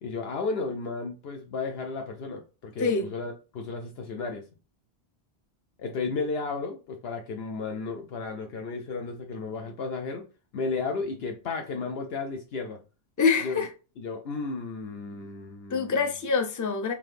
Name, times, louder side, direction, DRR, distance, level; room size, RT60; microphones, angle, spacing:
voice 1, 0.0-4.4 5.8-10.2 10.5-12.8 13.4-13.7 14.0-16.0, left 4 dB, 70° left, 0.8 m, -33 dB
voice 2, 13.2-13.7 15.7-16.9, left 5 dB, 25° left, 0.4 m, -25 dB
3.8 x 2.9 x 3.2 m
omnidirectional pair, 1.1 m